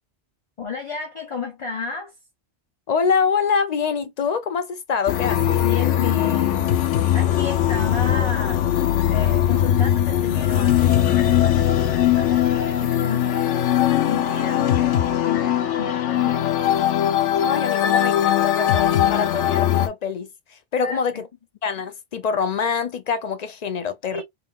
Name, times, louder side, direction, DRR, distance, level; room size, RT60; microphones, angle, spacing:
voice 1, 0.6-2.1 5.6-6.8 7.1-8.7 9.1-16.5 20.8-21.2 24.1-24.2, left 4 dB, 30° left, 0.8 m, -32 dB
voice 2, 2.9-5.6 17.4-21.3 21.6-24.2, left 6 dB, 65° left, 0.4 m, -25 dB
sound 1, 5.1-19.9, left 11 dB, 85° left, 1.0 m, -20 dB
3.6 x 3.4 x 2.3 m
omnidirectional pair, 1.2 m